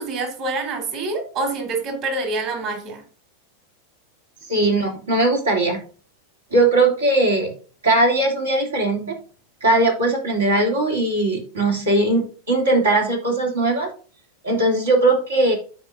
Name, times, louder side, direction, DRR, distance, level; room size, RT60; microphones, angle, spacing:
voice 1, 0.0-3.0, right 3 dB, 50° right, 3 dB, 3.6 m, -26 dB
voice 2, 4.5-5.8 6.5-7.5 7.8-9.2 9.6-13.9 14.4-15.5, right 2 dB, 85° right, 0 dB, 2.9 m, -19 dB
13.5 x 4.7 x 2.6 m, 0.40 s
hypercardioid pair, 95°, 0 cm